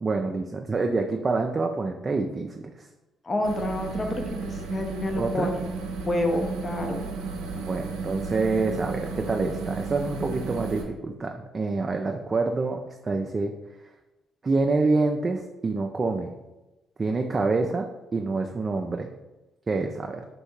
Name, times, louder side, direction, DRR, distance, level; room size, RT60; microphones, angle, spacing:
voice 1, 0.0-2.9 5.2-5.5 7.7-13.5 14.4-16.3 17.0-17.9 18.1-19.1 19.7-20.3, right 3 dB, 35° right, 3 dB, 0.4 m, -27 dB
voice 2, 3.2-5.6 6.1-7.1, left 1 dB, 35° left, 3 dB, 0.8 m, -28 dB
sound 1, 3.4-10.8, right 4 dB, 80° right, 0.7 m, -34 dB
3.3 x 2.6 x 4.5 m, 1.0 s
hypercardioid pair, 50°, 0 cm